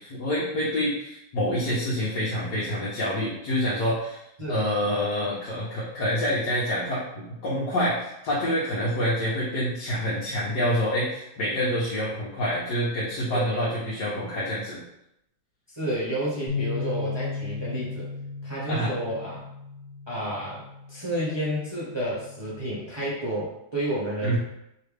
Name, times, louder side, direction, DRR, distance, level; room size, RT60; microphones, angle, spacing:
voice 1, 0.0-4.2 4.5-14.8 18.7-18.9 24.2-24.4, equal, 70° left, -7 dB, 1.5 m, -27 dB
voice 2, 15.7-18.1 18.4-19.4 20.1-20.6 20.9-24.4, right 1 dB, 20° right, -7 dB, 0.8 m, -30 dB
sound 1, 16.5-22.7, left 4 dB, 35° left, 0.6 m, -36 dB
5.4 x 2.5 x 3.3 m, 0.81 s
omnidirectional pair, 1.9 m